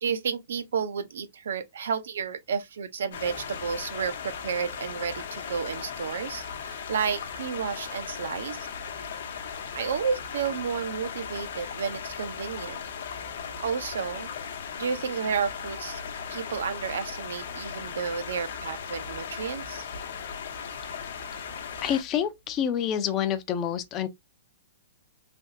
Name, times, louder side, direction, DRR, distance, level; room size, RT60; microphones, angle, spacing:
voice 1, 0.0-8.7 9.7-12.8 13.6-14.3 14.8-16.0 16.3-19.8, right 6 dB, 80° right, 0.6 m, -31 dB
sound 1, 3.1-22.0, left 6 dB, 65° left, 0.8 m, -37 dB
voice 2, 21.8-24.1, left 9 dB, 20° left, 0.4 m, -27 dB
3.4 x 2.8 x 2.5 m
hypercardioid pair, 170°, 0 cm